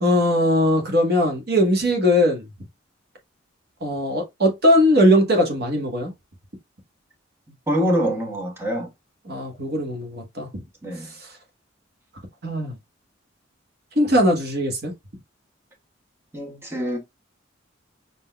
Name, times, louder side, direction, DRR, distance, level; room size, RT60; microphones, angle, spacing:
voice 1, 0.0-2.4 3.8-6.1 9.3-10.5 11.2-11.3 12.4-12.8 14.0-14.9, equal, 55° right, 1.2 m, -20 dB
voice 2, 7.7-8.9 10.8-11.1 16.3-17.0, equal, 15° right, 1.3 m, -24 dB
5.9 x 3.8 x 2.2 m
head